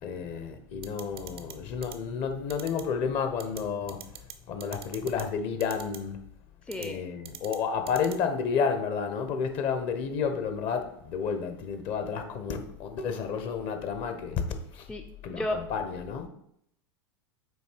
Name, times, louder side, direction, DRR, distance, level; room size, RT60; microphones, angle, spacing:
voice 1, 0.0-6.2 6.8-14.9 15.2-16.3, left 6 dB, 45° left, 0.9 m, -31 dB
sound 1, 0.8-1.5 1.8-1.9 2.5-2.8 3.4-3.6 3.9-4.3 4.6-5.2 5.6-6.0 6.7-6.9 7.2-7.6 7.9-8.1, right 10 dB, 75° right, 0.7 m, -42 dB
voice 2, 6.7-7.1 14.9-15.0 15.3-15.6, left 1 dB, 5° left, 0.5 m, -32 dB
7.9 x 2.9 x 4.5 m
figure-of-eight pair, 90°, 13 cm